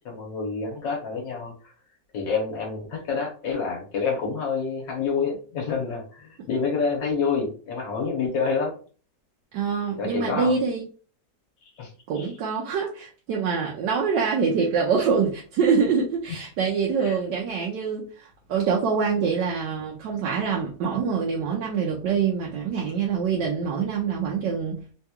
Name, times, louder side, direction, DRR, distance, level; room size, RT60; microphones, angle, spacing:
voice 1, 0.1-1.7 2.1-8.8 10.0-10.6 11.6-12.3 17.0-17.2, left 5 dB, 90° left, -1 dB, 1.6 m, -28 dB
voice 2, 9.5-10.9 12.1-24.8, right 6 dB, 80° right, -2 dB, 1.3 m, -25 dB
3.9 x 2.3 x 2.9 m, 0.39 s
omnidirectional pair, 1.9 m